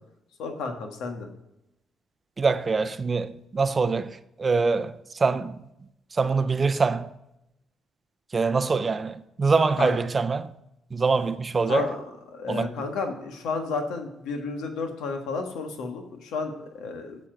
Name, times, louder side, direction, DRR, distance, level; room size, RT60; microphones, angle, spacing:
voice 1, 0.4-1.3 9.8-9.9 11.7-12.0 12.3-17.2, left 4 dB, 85° left, 1.5 m, -32 dB
voice 2, 2.4-5.6 6.1-7.1 8.3-10.5 10.9-11.9 12.5-12.9, right 4 dB, 30° right, 0.5 m, -24 dB
7.5 x 6.9 x 5.1 m
cardioid pair, 90°, 0 cm